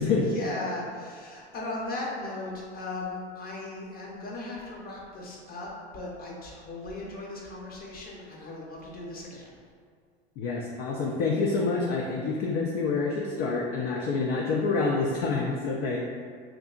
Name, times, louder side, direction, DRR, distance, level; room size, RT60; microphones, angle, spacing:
voice 1, 0.3-9.6, left 2 dB, 25° left, -3 dB, 0.8 m, -37 dB
voice 2, 10.4-16.0, left 4 dB, 45° left, -1 dB, 0.4 m, -27 dB
3.6 x 2.7 x 2.4 m, 2.1 s
hypercardioid pair, 95°, 33 cm